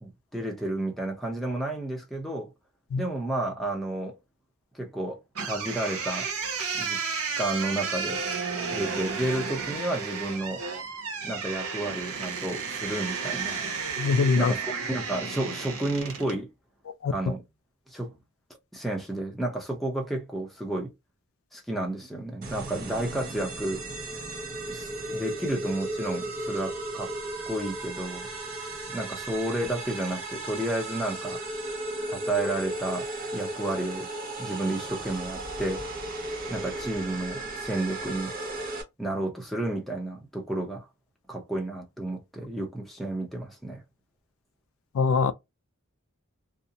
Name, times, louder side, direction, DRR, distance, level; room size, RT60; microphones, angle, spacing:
voice 1, 0.0-2.5 3.0-4.2 4.7-6.3 6.7-7.0 7.4-8.3 8.7-10.6 11.2-13.7 14.3-16.5 17.1-17.4 17.9-18.1 18.7-20.9 21.5-23.8 24.7-27.1 27.5-28.3 28.9-31.4 32.1-33.1 33.3-34.1 34.4-35.8 36.5-38.3 39.0-40.9 41.3-43.8, right 1 dB, ahead, 0.6 m, -31 dB
sound 1, 5.3-16.4, right 5 dB, 85° right, 0.7 m, -32 dB
voice 2, 14.0-14.5 17.0-17.1 44.9-45.3, left 5 dB, 65° left, 0.3 m, -22 dB
sound 2, 22.4-38.8, right 2 dB, 40° right, 0.6 m, -35 dB
2.4 x 2.0 x 2.6 m
head